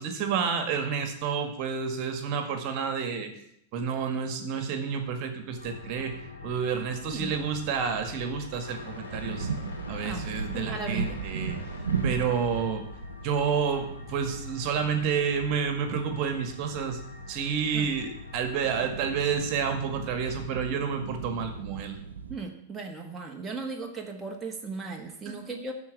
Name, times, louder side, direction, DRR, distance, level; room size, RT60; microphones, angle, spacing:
voice 1, 0.0-3.3 3.7-6.1 6.4-9.5 9.9-11.6 12.0-12.8 13.2-17.0 17.3-22.0 25.3-25.4, right 6 dB, 45° right, 6 dB, 1.8 m, -29 dB
sound 1, 5.6-20.5, left 4 dB, 85° left, 2.7 m, -44 dB
sound 2, 9.1-22.4, right 5 dB, 80° right, 0.9 m, -37 dB
voice 2, 10.5-11.2 17.7-17.9 22.3-25.7, right 3 dB, 15° right, 1 dB, 1.6 m, -37 dB
13.0 x 4.4 x 7.5 m, 0.75 s
figure-of-eight pair, 95°, 0 cm